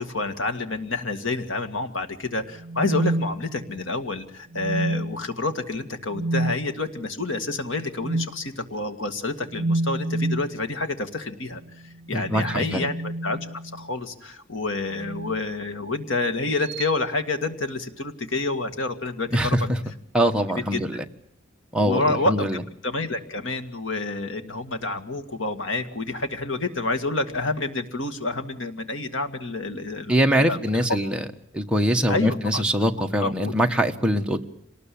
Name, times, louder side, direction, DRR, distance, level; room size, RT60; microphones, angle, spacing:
voice 1, 0.0-11.6 12.1-13.4 13.7-19.6 20.7-20.8 21.8-30.9 32.1-32.6 33.2-33.5, left 2 dB, 80° left, 8 dB, 2.1 m, -28 dB
sound 1, 2.6-3.9 4.5-5.3 6.1-6.6 8.0-8.4 9.5-10.5 12.0-13.9 15.0-15.4 16.6-16.9, right 1 dB, 55° right, 1.5 m, -28 dB
voice 2, 12.1-12.9 19.3-19.8 20.1-21.0 21.7-22.6 30.1-31.2 31.5-34.4, equal, 5° right, 2 dB, 1.3 m, -23 dB
26.0 x 19.5 x 8.6 m, 0.72 s
head